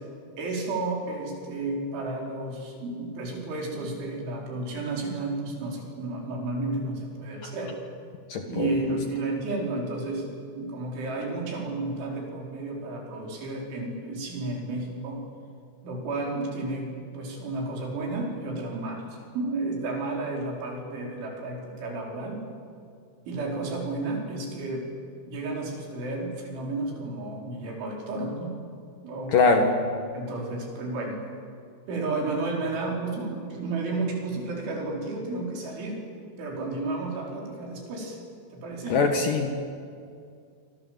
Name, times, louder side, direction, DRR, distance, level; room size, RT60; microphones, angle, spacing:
voice 1, 0.4-7.7 8.5-15.2 15.8-22.4 23.3-24.9 25.3-28.5 29.0-29.4 30.1-31.2 31.9-36.0 36.4-38.2 38.5-39.0, right 2 dB, 75° right, 0 dB, 6.9 m, -32 dB
voice 2, 8.3-8.7 29.3-29.7 38.9-39.5, left 4 dB, 60° left, 4 dB, 2.6 m, -22 dB
26.5 x 26.0 x 7.7 m, 2.3 s
omnidirectional pair, 5.5 m